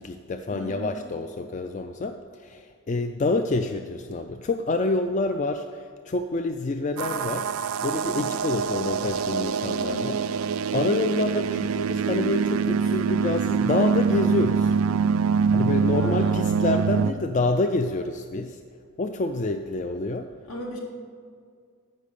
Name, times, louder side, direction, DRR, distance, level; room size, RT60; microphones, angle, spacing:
voice 1, 0.0-7.5 7.8-10.2 10.7-14.7 15.5-18.6 19.0-20.3, left 2 dB, 35° left, 7 dB, 0.3 m, -27 dB
voice 2, 0.5-1.0 9.8-10.3 11.1-11.7 15.9-16.6 20.5-20.8, left 1 dB, 75° left, -1 dB, 1.8 m, -37 dB
sound 1, 7.0-17.1, right 6 dB, 70° right, 0.3 m, -24 dB
13.5 x 5.4 x 6.7 m, 2.1 s
head